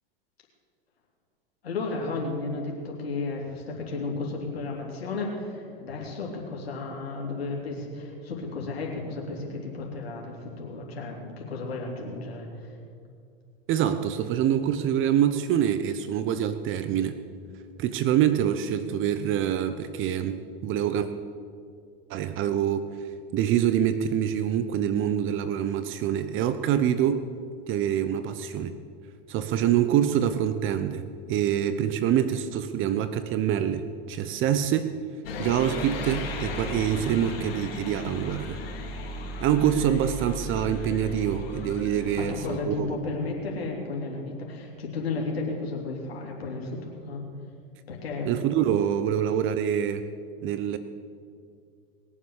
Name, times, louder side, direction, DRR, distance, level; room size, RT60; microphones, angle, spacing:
voice 1, 1.6-12.8 42.2-47.2 47.9-48.3, left 3 dB, 90° left, -1 dB, 3.2 m, -33 dB
voice 2, 13.7-17.2 17.8-21.1 22.1-22.9 23.3-27.2 27.7-28.7 29.3-35.0 35.4-38.6 39.4-42.9 48.2-50.1 50.4-50.8, right 10 dB, 40° right, 11 dB, 0.9 m, -25 dB
sound 1, 35.2-42.6, left 2 dB, 75° left, 3.0 m, -35 dB
21.0 x 7.4 x 8.3 m, 2.3 s
hypercardioid pair, 100°, 30 cm